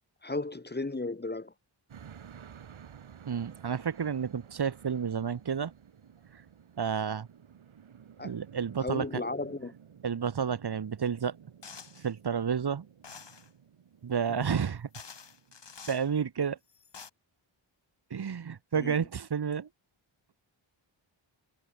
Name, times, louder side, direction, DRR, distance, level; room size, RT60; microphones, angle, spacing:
voice 1, 0.2-1.5 8.2-8.3 8.8-9.7 14.3-14.5 18.7-19.0, left 2 dB, 20° left, 1.3 m, -35 dB
sound 1, 1.9-16.2, right 8 dB, 75° right, 1.9 m, -54 dB
voice 2, 3.3-5.7 6.8-7.3 8.2-9.0 10.0-11.3 12.0-12.9 14.0-14.9 15.9-16.6 18.1-19.7, right 7 dB, 50° right, 1.3 m, -30 dB
sound 2, 11.6-12.1 13.0-13.5 14.5-14.6 14.9-16.1 16.7-17.1, left 6 dB, 55° left, 3.1 m, -48 dB
wide cardioid pair, 135°, 49 cm